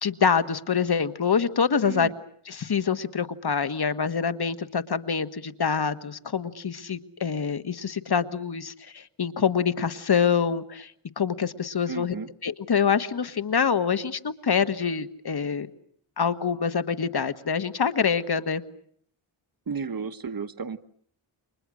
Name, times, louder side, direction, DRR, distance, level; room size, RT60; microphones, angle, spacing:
voice 1, 0.0-2.1 2.4-10.9 11.2-12.2 12.4-15.7 16.2-18.6, left 6 dB, 50° left, 11 dB, 1.6 m, -25 dB
voice 2, 11.9-12.3 19.7-20.8, right 5 dB, 45° right, 11 dB, 1.3 m, -33 dB
30.0 x 25.5 x 6.4 m, 0.67 s
wide cardioid pair, 95°, 50 cm